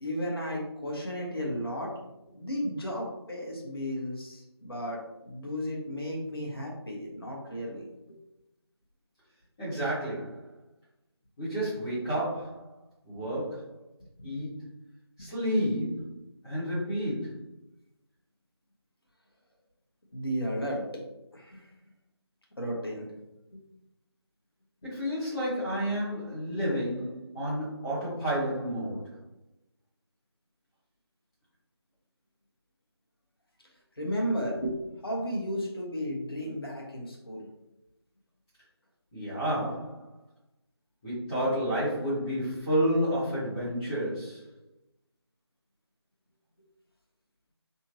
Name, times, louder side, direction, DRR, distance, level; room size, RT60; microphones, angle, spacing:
voice 1, 0.0-1.9 2.3-8.2 20.1-20.8 21.3-21.7 22.6-23.1 23.5-23.6 34.0-37.5, equal, 60° left, -2 dB, 1.3 m, -34 dB
voice 2, 9.6-10.5 11.4-12.7 13.0-13.7 14.2-14.7 15.2-16.1 16.4-17.5 24.8-29.2 39.1-40.1 41.0-44.4, equal, 10° left, -16 dB, 0.9 m, -30 dB
3.4 x 2.9 x 3.0 m, 0.91 s
figure-of-eight pair, 165°, 14 cm